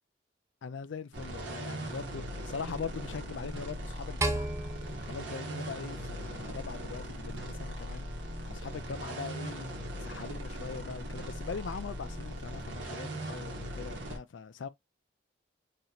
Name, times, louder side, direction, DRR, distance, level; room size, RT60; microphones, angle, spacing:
voice 1, 0.6-4.5 5.0-8.1 8.5-9.7 10.0-14.7, left 5 dB, 85° left, 0.4 m, -41 dB
sound 1, 1.1-14.2, right 1 dB, 90° right, 1.3 m, -39 dB
sound 2, 4.2-6.6, right 2 dB, 15° right, 0.4 m, -35 dB
3.2 x 2.8 x 3.9 m
head